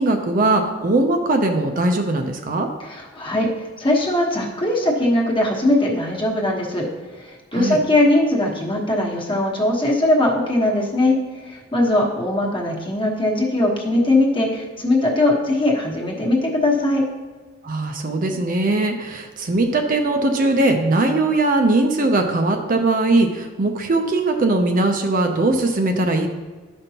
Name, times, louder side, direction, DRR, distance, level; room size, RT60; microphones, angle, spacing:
voice 1, 0.0-2.7 7.5-7.8 17.6-26.3, right 2 dB, 40° right, 4 dB, 0.5 m, -20 dB
voice 2, 2.9-6.9 7.1-17.0, left 1 dB, 25° left, -2 dB, 1.2 m, -20 dB
11.5 x 5.2 x 2.8 m, 1.4 s
head